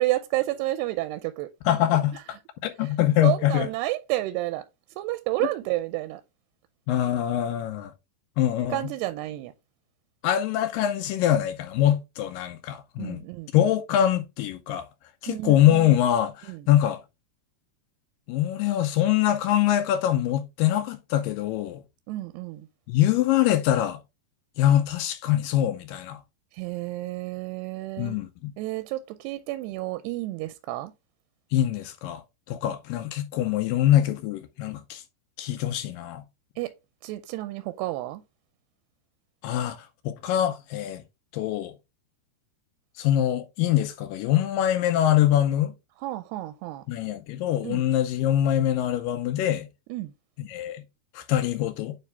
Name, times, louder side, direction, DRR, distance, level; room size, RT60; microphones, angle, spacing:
voice 1, 0.0-1.5 2.1-2.2 2.8-2.9 3.2-4.6 5.0-6.2 8.7-9.5 13.0-13.7 15.3-16.0 16.4-16.7 22.1-22.7 26.5-28.2 28.6-30.9 36.6-36.7 37.0-38.2 46.0-46.8 47.6-47.9 49.9-50.1, right 17 dB, 90° right, 2.6 m, -30 dB
voice 2, 1.7-2.4 2.6-3.7 6.9-7.9 8.4-8.8 10.2-13.2 13.5-14.9 15.2-17.0 18.3-21.8 22.9-24.0 24.6-26.2 28.0-28.5 31.5-32.2 32.5-35.0 35.4-36.2 39.4-41.0 41.3-41.7 43.0-45.7 46.9-49.7 50.4-50.8 51.2-52.0, left 12 dB, 90° left, 2.0 m, -24 dB
9.3 x 3.4 x 3.4 m
omnidirectional pair, 4.6 m